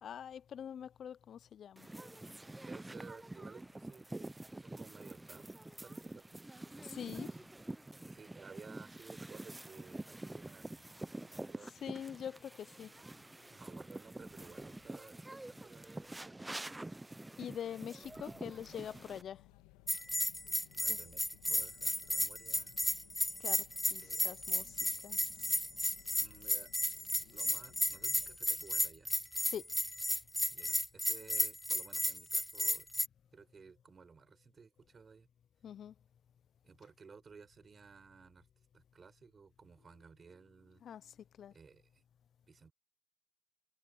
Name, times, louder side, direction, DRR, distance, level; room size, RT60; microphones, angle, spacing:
voice 1, 0.0-1.9 6.8-7.4 11.8-12.9 17.4-19.4 20.9-21.0 23.4-25.2 29.5-29.7 35.6-35.9 40.8-41.5, left 9 dB, 60° left, 0.6 m, -45 dB
sound 1, 1.8-19.2, right 2 dB, 15° right, 0.8 m, -47 dB
voice 2, 2.6-5.5 5.8-6.4 8.1-12.0 13.5-16.7 20.7-22.7 24.0-24.2 26.2-26.7 27.2-29.3 30.5-32.9 33.3-35.3 36.6-38.5 38.7-40.8 41.5-42.0 42.5-42.7, right 5 dB, 40° right, 6.7 m, -57 dB
sound 2, 18.0-28.4, left 19 dB, 90° left, 2.4 m, -61 dB
Bell, 19.9-33.1, left 1 dB, 5° left, 0.4 m, -34 dB
supercardioid pair, 65°, 0 cm